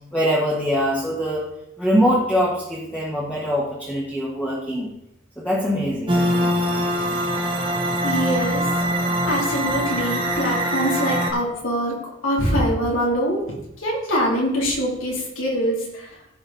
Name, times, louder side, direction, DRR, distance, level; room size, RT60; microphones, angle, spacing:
voice 1, 0.1-1.4 1.8-4.9 5.4-6.2 6.4-6.6, equal, 10° left, -5 dB, 1.4 m, -23 dB
sound 1, 6.1-11.3, equal, 25° right, 1.2 m, -23 dB
voice 2, 8.0-8.7 9.1-12.0 12.2-13.4 13.8-16.1, equal, 90° left, -3 dB, 3.4 m, -23 dB
15.0 x 5.1 x 4.0 m, 0.84 s
head